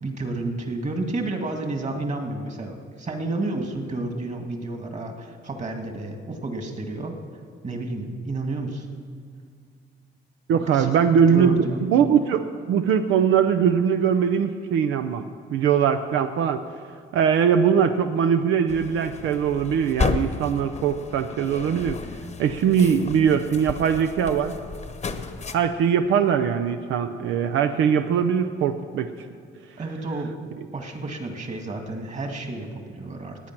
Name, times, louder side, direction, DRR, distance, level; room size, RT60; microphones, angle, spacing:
voice 1, 0.0-7.1 7.6-8.9 10.5-10.9 11.3-11.8 29.8-30.3 30.7-33.4, right 2 dB, 35° right, 4 dB, 2.0 m, -31 dB
voice 2, 10.5-15.2 15.5-16.6 17.1-22.0 22.4-24.6 25.5-29.1, right 7 dB, 85° right, 7 dB, 0.6 m, -21 dB
sound 1, 18.7-25.6, left 5 dB, 35° left, 1.0 m, -32 dB
18.5 x 9.0 x 6.0 m, 2.1 s
cardioid pair, 90°, 20 cm